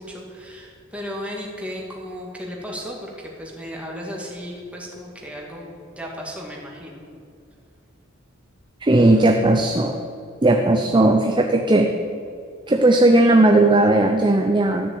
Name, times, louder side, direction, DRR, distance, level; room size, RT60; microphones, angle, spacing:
voice 1, 0.0-5.7 6.0-7.0, equal, 5° right, -2 dB, 2.1 m, -35 dB
voice 2, 8.8-10.0 10.4-11.9 12.7-14.9, right 2 dB, 25° right, 3 dB, 0.6 m, -16 dB
13.0 x 6.7 x 8.5 m, 2.4 s
head